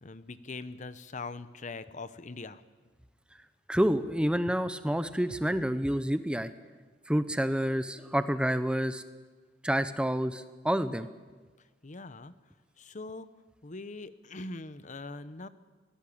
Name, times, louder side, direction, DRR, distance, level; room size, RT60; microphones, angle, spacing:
voice 1, 0.0-2.6 11.8-12.3 12.8-13.3 13.6-15.5, left 3 dB, 40° left, 14 dB, 0.8 m, -42 dB
voice 2, 3.7-6.5 7.1-9.0 9.6-11.1, equal, 5° right, 12 dB, 0.8 m, -28 dB
23.0 x 17.0 x 8.6 m, 1.3 s
head